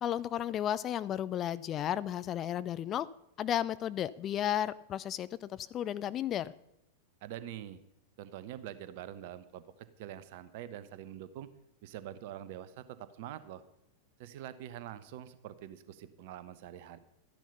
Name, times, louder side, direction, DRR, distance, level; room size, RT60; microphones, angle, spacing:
voice 1, 0.0-3.1 3.4-6.5, left 11 dB, 30° left, 16 dB, 0.4 m, -33 dB
voice 2, 7.2-7.8 8.2-9.6 10.0-11.5 11.8-13.6 14.2-17.0, right 11 dB, 50° right, 13 dB, 1.0 m, -45 dB
13.0 x 10.5 x 5.5 m, 0.81 s
figure-of-eight pair, 90°, 0 cm